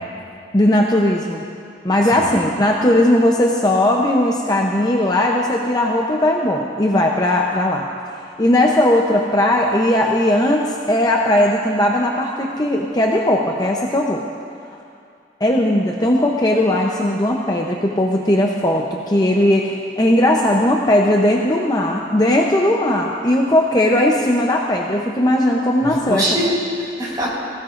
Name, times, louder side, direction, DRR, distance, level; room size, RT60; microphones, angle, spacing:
voice 1, 0.5-1.4 1.8-7.9 8.4-14.3 15.4-26.2, left 1 dB, 20° left, 0 dB, 0.7 m, -17 dB
voice 2, 2.0-2.3 25.8-27.3, equal, 25° right, -6 dB, 3.7 m, -23 dB
20.0 x 16.5 x 2.5 m, 2.4 s
head